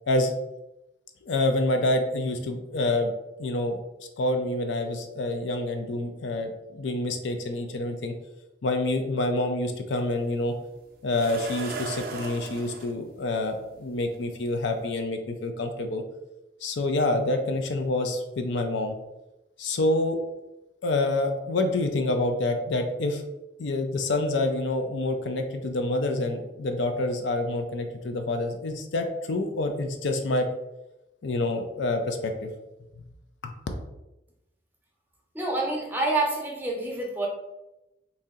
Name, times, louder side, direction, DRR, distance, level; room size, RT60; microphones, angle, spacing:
voice 1, 1.3-3.1 3.4-3.8 4.2-8.1 8.6-10.5 11.0-16.0 16.6-19.0 19.6-20.2 20.8-23.2 23.6-30.5 31.2-32.5 33.4-33.5, left 2 dB, 75° left, 5 dB, 0.5 m, -27 dB
sound 1, 10.0-10.1 11.1-12.9 14.1-14.2 14.8-14.9, right 3 dB, 55° right, 0.4 m, -36 dB
voice 2, 35.3-37.3, right 2 dB, 10° right, -1 dB, 0.6 m, -27 dB
3.0 x 2.7 x 3.6 m, 0.95 s
head